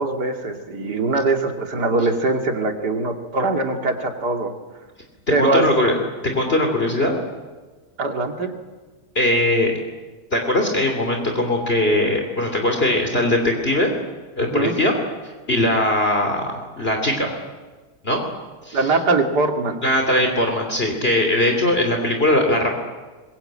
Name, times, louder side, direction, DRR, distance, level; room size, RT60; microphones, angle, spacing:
voice 1, 0.0-4.5 5.3-5.7 8.0-8.5 14.4-14.7 18.7-19.8, right 3 dB, 75° right, 4 dB, 3.0 m, -22 dB
voice 2, 5.4-5.9 6.2-7.1 9.1-9.7 10.3-13.9 14.4-14.9 15.2-17.3 18.0-18.2 18.6-18.9 19.8-22.7, left 1 dB, 35° left, 3 dB, 3.3 m, -20 dB
25.0 x 22.0 x 8.9 m, 1.3 s
omnidirectional pair, 1.8 m